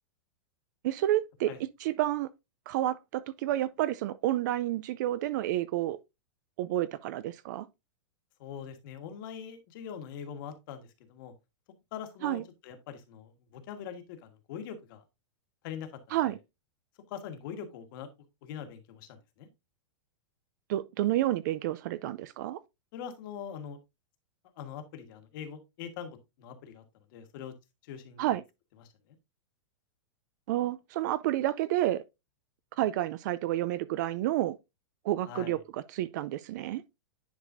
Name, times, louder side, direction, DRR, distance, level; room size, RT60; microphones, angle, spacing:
voice 1, 0.8-1.5 1.8-2.3 2.7-6.0 6.6-7.7 12.2-12.4 16.1-16.4 20.7-22.6 28.2-28.4 30.5-32.0 32.8-34.6 35.0-36.8, right 14 dB, 40° right, 0.4 m, -30 dB
voice 2, 8.4-11.3 11.9-15.0 15.6-15.9 16.2-16.3 17.1-18.1 18.4-19.5 22.9-23.8 24.6-26.8 27.1-27.5 27.8-28.3 28.8-28.9 35.3-35.6, left 8 dB, 45° left, 1.5 m, -43 dB
10.0 x 4.8 x 2.5 m
supercardioid pair, 165°, 16 cm